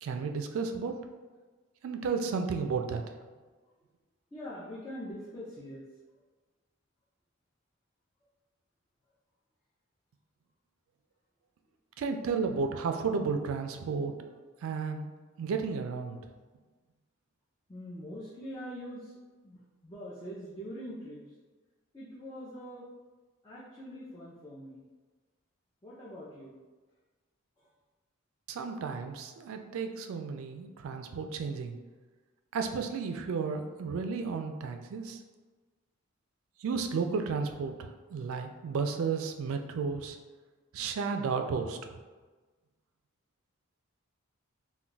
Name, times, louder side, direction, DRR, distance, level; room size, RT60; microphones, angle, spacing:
voice 1, 0.0-0.9 1.8-3.2 12.0-16.2 28.5-31.7 32.5-35.2 36.6-40.2 40.7-42.0, right 5 dB, 75° right, 6 dB, 0.3 m, -33 dB
voice 2, 4.3-6.0 17.7-19.2 19.4-21.3 21.9-22.9 23.4-24.9 25.8-26.6 27.6-27.7 28.6-28.7, equal, 15° left, -8 dB, 0.4 m, -43 dB
2.3 x 2.2 x 3.8 m, 1.3 s
head